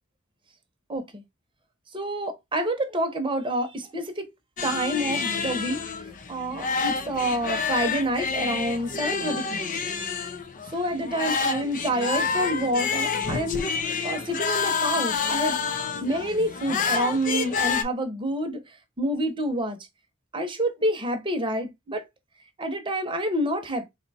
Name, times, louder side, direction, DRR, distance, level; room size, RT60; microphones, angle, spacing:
voice 1, 0.9-1.2 1.9-4.3 4.6-5.8 6.3-9.7 10.7-13.7 14.0-15.7 16.0-18.6 19.0-19.8 20.3-22.0 22.6-23.9, right 1 dB, 25° right, 0.9 m, -28 dB
sound 1, 4.6-17.8, left 5 dB, 40° left, 0.5 m, -28 dB
3.8 x 2.3 x 4.1 m
head